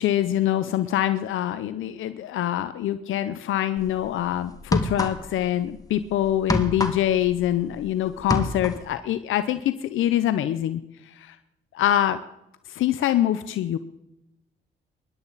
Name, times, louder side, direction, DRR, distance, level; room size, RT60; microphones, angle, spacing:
voice 1, 0.0-11.4 11.7-12.2 12.7-13.8, left 12 dB, 80° left, 12 dB, 0.7 m, -24 dB
sound 1, 3.8-4.0 4.6-5.5 5.8-7.9 8.1-8.9, left 1 dB, 15° left, 2.0 m, -26 dB
24.0 x 11.5 x 4.1 m, 0.86 s
supercardioid pair, 55°, 20 cm